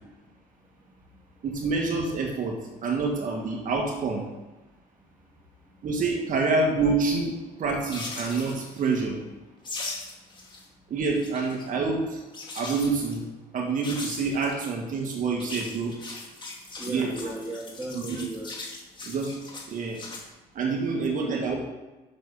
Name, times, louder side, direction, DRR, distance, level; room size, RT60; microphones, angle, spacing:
voice 1, 1.4-4.3 5.8-9.2 10.9-12.2 12.6-13.3 13.5-15.9 16.9-17.1 17.9-18.0 19.1-19.4 19.7-20.0 20.6-21.5, right 4 dB, 50° right, 1 dB, 1.6 m, -27 dB
sound 1, 7.9-9.0 9.6-10.6 11.0-11.6 12.3-13.2 13.8-14.5 15.3-20.2, left 3 dB, 25° left, 2.0 m, -39 dB
voice 2, 16.8-18.5 20.8-21.5, right 1 dB, 10° right, -1 dB, 1.9 m, -36 dB
7.6 x 6.3 x 5.4 m, 1.1 s
cardioid pair, 110°, 17 cm